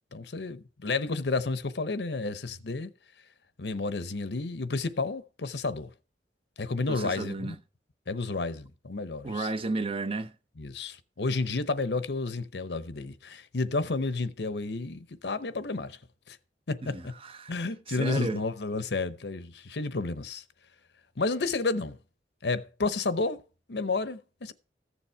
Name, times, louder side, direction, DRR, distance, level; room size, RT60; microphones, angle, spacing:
voice 1, 0.1-2.9 3.6-5.9 6.6-7.6 8.1-9.5 10.6-16.0 16.3-16.4 16.7-17.1 17.5-20.4 21.2-22.0 22.4-23.4 23.7-24.5, left 3 dB, 70° left, 0.9 m, -31 dB
voice 2, 6.9-7.6 9.2-10.3 16.8-17.5 17.9-18.4, right 3 dB, 35° right, 0.8 m, -33 dB
14.5 x 7.2 x 4.6 m
head